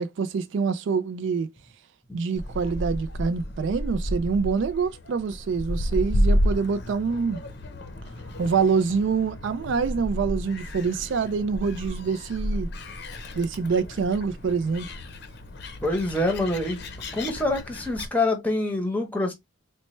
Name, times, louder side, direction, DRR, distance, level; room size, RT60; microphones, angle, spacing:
voice 1, 0.0-1.5 2.1-7.4 8.4-12.7 13.3-14.9, right 5 dB, 60° right, 0.3 m, -26 dB
Gull seagull, 2.4-18.1, equal, 55° left, 0.6 m, -31 dB
voice 2, 15.8-16.8 17.1-19.3, left 2 dB, 5° left, 0.7 m, -25 dB
4.1 x 2.1 x 3.0 m
head